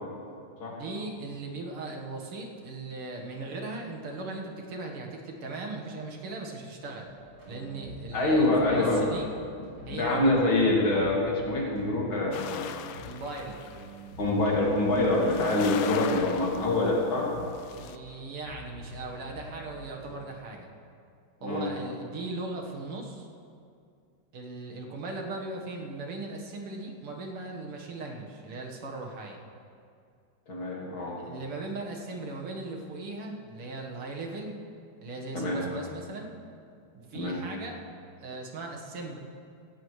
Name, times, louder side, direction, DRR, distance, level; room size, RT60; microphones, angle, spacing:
voice 1, 0.7-7.1 7.5-9.3 9.9-10.3 13.0-13.6 17.7-20.7 21.4-23.3 24.3-29.4 31.2-34.6 35.0-36.3 36.9-37.8 38.2-39.2, right 2 dB, 80° right, 0 dB, 2.4 m, -38 dB
sound 1, 7.0-20.1, equal, 65° right, 4.7 m, -47 dB
voice 2, 8.1-9.0 9.9-12.9 14.2-17.3 21.4-21.7 30.5-31.2 35.3-35.6 37.1-37.4, left 2 dB, 65° left, -4 dB, 3.2 m, -25 dB
sound 2, 12.3-14.5 15.0-17.0 17.4-18.0, left 9 dB, 90° left, 1.6 m, -40 dB
17.0 x 16.0 x 3.2 m, 2.4 s
omnidirectional pair, 2.4 m